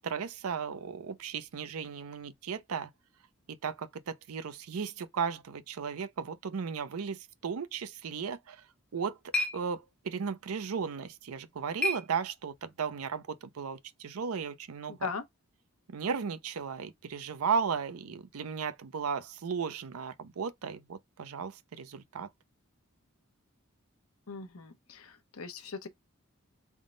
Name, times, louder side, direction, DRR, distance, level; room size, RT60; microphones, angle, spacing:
voice 1, 0.0-2.9 3.5-8.6 8.9-9.2 9.5-15.1 15.9-22.3, right 6 dB, 85° right, 0.5 m, -35 dB
sound 1, 8.6-12.8, left 2 dB, 5° left, 0.6 m, -38 dB
voice 2, 14.9-15.2 24.3-25.9, left 5 dB, 85° left, 0.7 m, -39 dB
3.5 x 2.1 x 3.7 m
head